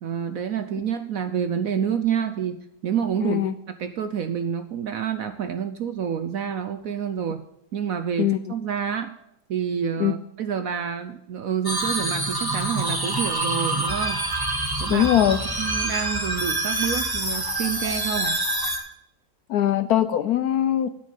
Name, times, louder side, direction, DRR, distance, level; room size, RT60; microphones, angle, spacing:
voice 1, 0.0-3.4 3.8-7.4 7.7-9.1 9.5-14.2 14.8-15.1 15.6-18.4, right 8 dB, 65° right, 10 dB, 0.9 m, -28 dB
voice 2, 3.2-3.5 8.2-8.4 10.0-10.1 14.9-15.4 19.5-20.9, left 11 dB, 70° left, 13 dB, 0.9 m, -21 dB
sound 1, 11.6-18.8, right 2 dB, 15° right, 1.4 m, -26 dB
9.4 x 8.5 x 5.3 m, 0.84 s
omnidirectional pair, 2.0 m